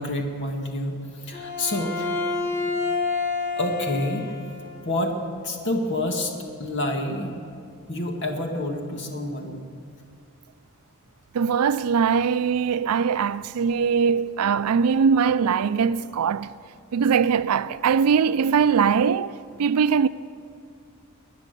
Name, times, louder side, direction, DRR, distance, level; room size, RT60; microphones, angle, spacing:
voice 1, 0.0-2.5 2.8-3.0 3.6-6.3 6.6-7.4 7.9-9.6, left 1 dB, 55° left, 2.1 m, -28 dB
Bowed string instrument, 1.3-4.8, left 4 dB, 80° left, 5.6 m, -28 dB
voice 2, 11.3-16.5 16.9-20.1, right 6 dB, 85° right, 0.4 m, -21 dB
21.0 x 10.0 x 6.8 m
head